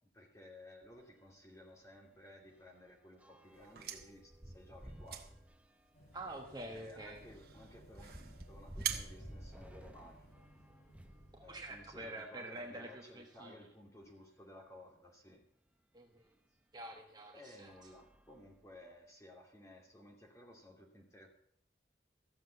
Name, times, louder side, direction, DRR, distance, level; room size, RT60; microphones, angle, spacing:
voice 1, 0.1-5.4 6.7-10.3 11.4-15.4 17.3-21.3, left 1 dB, 15° left, 0 dB, 2.7 m, -56 dB
sound 1, 0.8-1.0 1.4-1.5 1.8-11.3 12.0-13.4 14.1-14.2 14.4-14.5 16.2-16.3 16.9-17.1 17.6-18.9, equal, 10° right, 0.7 m, -55 dB
sound 2, 3.5-10.3, right 9 dB, 55° right, 1.4 m, -47 dB
sound 3, 5.9-12.1, equal, 40° left, 4.3 m, -61 dB
voice 2, 6.1-7.2 11.3-13.5 15.9-16.3 16.7-17.7, right 1 dB, 25° right, 2 dB, 1.2 m, -47 dB
14.5 x 7.4 x 8.0 m, 0.66 s
head